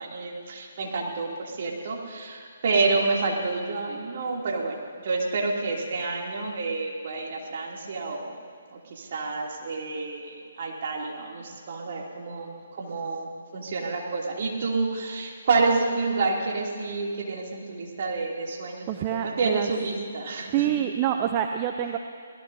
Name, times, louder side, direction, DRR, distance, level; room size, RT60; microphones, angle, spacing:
voice 1, 0.0-8.3 8.7-20.7, right 3 dB, 50° right, -1 dB, 2.9 m, -29 dB
voice 2, 18.9-19.7 20.5-22.0, right 10 dB, 30° right, 5 dB, 0.7 m, -26 dB
24.5 x 18.5 x 2.8 m, 2.3 s
figure-of-eight pair, 140°, 0 cm